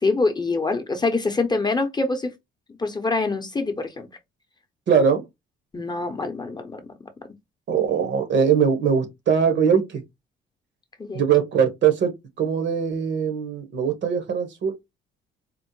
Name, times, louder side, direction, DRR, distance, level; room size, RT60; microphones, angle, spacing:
voice 1, 0.0-2.3 2.7-4.1 5.7-6.8 11.0-11.2, left 3 dB, 20° left, 0.7 m, -25 dB
voice 2, 4.9-5.2 7.7-10.0 11.1-14.7, right 7 dB, 65° right, 1.1 m, -21 dB
4.2 x 2.0 x 3.0 m
cardioid pair, 90°, 20 cm